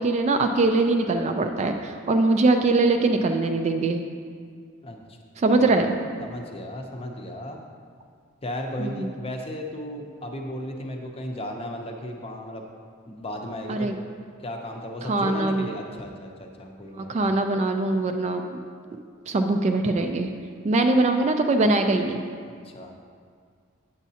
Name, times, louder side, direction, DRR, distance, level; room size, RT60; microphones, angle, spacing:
voice 1, 0.0-4.0 5.4-5.9 8.8-9.1 13.7-13.9 15.0-15.7 17.0-18.6 19.3-20.3 20.6-22.2, right 2 dB, 35° right, 5 dB, 0.3 m, -22 dB
voice 2, 6.2-7.6 8.4-12.6 13.1-13.9 14.4-17.2 22.5-22.9, left 1 dB, 30° left, 2 dB, 0.6 m, -35 dB
8.2 x 7.2 x 2.8 m, 2.1 s
head